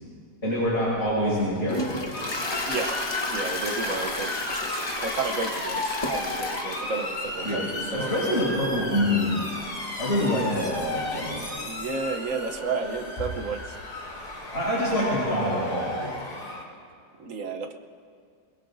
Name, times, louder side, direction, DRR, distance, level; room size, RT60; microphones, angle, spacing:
voice 1, 0.4-2.3 7.4-7.7 8.0-9.5 10.0-11.6 14.5-16.2, equal, 40° left, -8 dB, 5.3 m, -26 dB
Toilet flush, 0.7-15.4, left 2 dB, 25° left, 0.6 m, -36 dB
Motor vehicle (road) / Siren, 2.1-16.6, left 2 dB, 75° left, 3.1 m, -34 dB
voice 2, 3.3-8.1 11.4-13.6 17.2-17.7, right 4 dB, 60° right, 6 dB, 1.1 m, -32 dB
21.5 x 21.5 x 2.6 m, 2.2 s
omnidirectional pair, 1.7 m